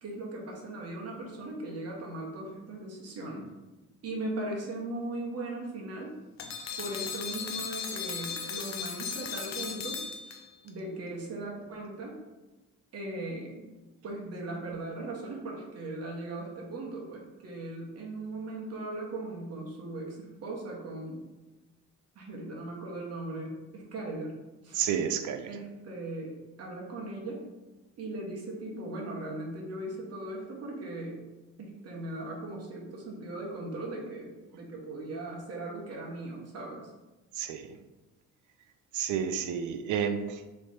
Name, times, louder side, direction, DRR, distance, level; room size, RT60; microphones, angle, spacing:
voice 1, 0.0-3.5 4.0-6.1 6.8-10.0 10.3-10.4 10.6-12.2 12.9-13.7 14.0-21.3 22.1-24.8 25.4-27.4 28.0-31.2 31.6-36.9, right 2 dB, 55° right, -2 dB, 1.2 m, -38 dB
sound 1, 6.4-10.7, left 6 dB, 65° left, 0.6 m, -37 dB
voice 2, 24.7-25.5 37.4-37.8 38.9-40.5, right 8 dB, 75° right, 9 dB, 0.5 m, -31 dB
3.2 x 3.2 x 4.2 m, 1.1 s
cardioid pair, 90°, 30 cm